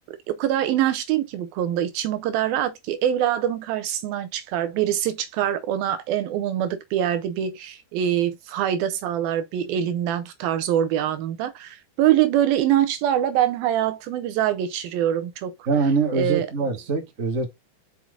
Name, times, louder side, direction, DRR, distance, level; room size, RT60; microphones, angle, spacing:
voice 1, 0.1-15.5 16.1-16.5, right 11 dB, 75° right, 2.4 m, -24 dB
voice 2, 15.7-17.5, right 4 dB, 40° right, 1.0 m, -23 dB
5.9 x 5.9 x 3.7 m
omnidirectional pair, 4.5 m